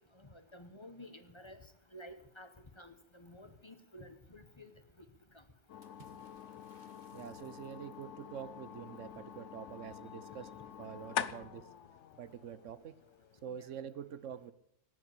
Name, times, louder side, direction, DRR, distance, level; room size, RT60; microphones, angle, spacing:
voice 1, 0.2-1.6 1.9-2.5 2.8-4.7 13.6-13.7, left 1 dB, 25° left, 9 dB, 1.1 m, -52 dB
sound 1, 5.7-13.5, left 9 dB, 70° left, 1.1 m, -45 dB
Water / Splash splatter, 5.8-8.2, right 3 dB, 35° right, 2.0 m, -64 dB
voice 2, 7.1-11.7 12.2-12.9 13.4-14.5, right 8 dB, 75° right, 15 dB, 1.2 m, -46 dB
18.5 x 9.5 x 8.1 m, 0.77 s
omnidirectional pair, 1.3 m